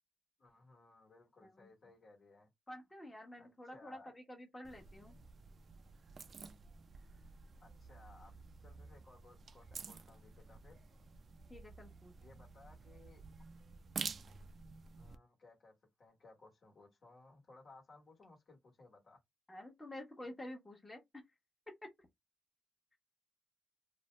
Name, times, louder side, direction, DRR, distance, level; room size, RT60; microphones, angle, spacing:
voice 1, 0.4-2.5 3.4-4.1 7.6-8.3 8.6-10.8 12.2-13.2 15.0-19.2, left 3 dB, 55° left, 1.2 m, -61 dB
voice 2, 2.7-5.1 11.5-12.1 19.5-21.0 21.7-21.9, left 1 dB, 20° left, 1.0 m, -50 dB
sound 1, 4.6-15.2, right 5 dB, 55° right, 0.3 m, -50 dB
2.6 x 2.0 x 3.1 m
cardioid pair, 80°, 0 cm